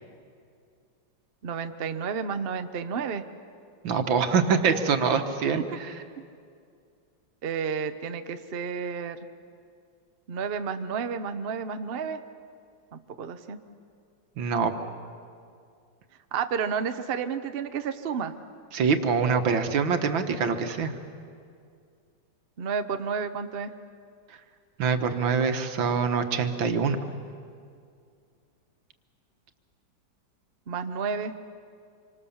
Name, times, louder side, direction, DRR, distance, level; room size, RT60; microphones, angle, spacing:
voice 1, 1.4-3.2 7.4-9.2 10.3-12.2 12.9-13.6 16.3-18.3 22.6-23.7 30.7-31.3, right 6 dB, 45° right, 9 dB, 0.8 m, -31 dB
voice 2, 3.8-5.9 14.4-14.7 18.7-20.9 24.8-27.0, right 5 dB, 80° right, 8 dB, 2.0 m, -24 dB
26.0 x 25.0 x 7.2 m, 2.3 s
omnidirectional pair, 2.1 m